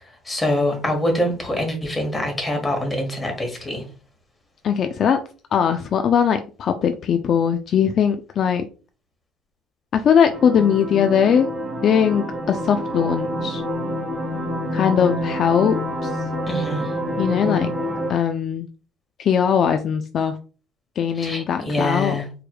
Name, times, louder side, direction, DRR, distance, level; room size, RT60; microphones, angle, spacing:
voice 1, 0.2-3.8 16.5-16.9 21.2-22.2, left 1 dB, 15° left, 1.3 m, -24 dB
voice 2, 4.6-5.2 5.5-8.7 9.9-11.5 11.8-13.6 14.7-16.2 17.2-17.7 18.1-18.7 19.2-20.4 21.0-22.2, left 8 dB, 45° left, 0.4 m, -20 dB
sound 1, 10.3-18.1, equal, 15° right, 0.8 m, -27 dB
4.7 x 3.2 x 2.3 m
cardioid pair, 125°, 0 cm